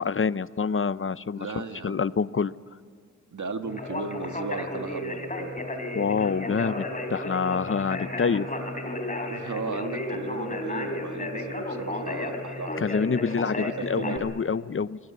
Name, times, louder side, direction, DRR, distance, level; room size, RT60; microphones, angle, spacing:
voice 1, 0.0-1.5 1.8-2.5 5.9-6.8 7.1-8.5 12.8-15.0, left 5 dB, 45° left, 17 dB, 0.6 m, -26 dB
voice 2, 1.4-2.0 3.3-5.5 9.3-12.9 13.6-13.7 14.0-14.3, right 4 dB, 75° right, 6 dB, 1.7 m, -36 dB
Conversation, 3.7-14.2, left 1 dB, 25° left, 3.2 m, -33 dB
25.0 x 19.5 x 8.4 m, 2.2 s
wide cardioid pair, 75°, 30 cm